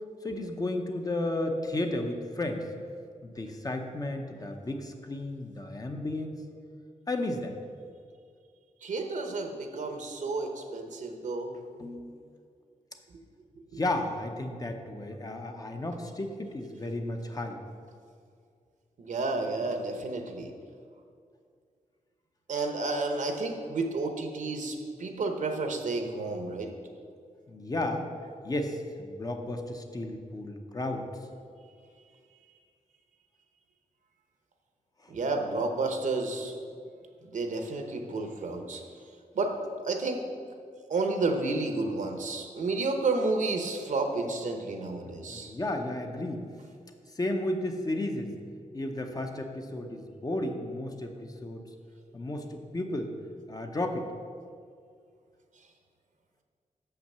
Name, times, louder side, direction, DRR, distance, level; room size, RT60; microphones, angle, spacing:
voice 1, 0.2-2.6 3.2-6.4 7.1-7.5 11.8-12.1 13.8-17.6 27.5-28.1 28.4-31.1 45.3-46.4 47.2-48.3 48.7-51.6 52.1-53.1 53.5-54.1, left 1 dB, 30° left, 4 dB, 0.7 m, -33 dB
voice 2, 8.8-11.6 13.7-13.8 19.0-20.5 22.5-26.7 35.1-36.5 37.2-38.8 39.3-39.5 39.8-40.2 40.9-45.5, right 3 dB, 70° right, 5 dB, 0.9 m, -31 dB
6.5 x 5.8 x 6.7 m, 2.2 s
wide cardioid pair, 120°, 13 cm